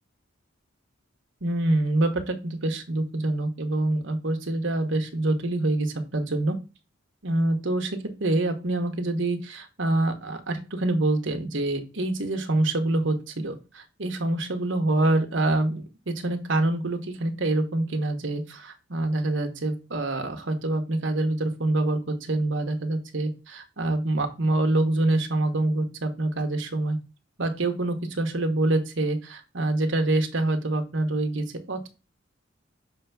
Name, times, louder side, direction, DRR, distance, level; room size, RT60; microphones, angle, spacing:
voice 1, 1.4-6.6 7.2-27.0 27.4-31.9, right 2 dB, 65° right, 5 dB, 1.3 m, -26 dB
6.4 x 3.5 x 5.6 m, 0.30 s
head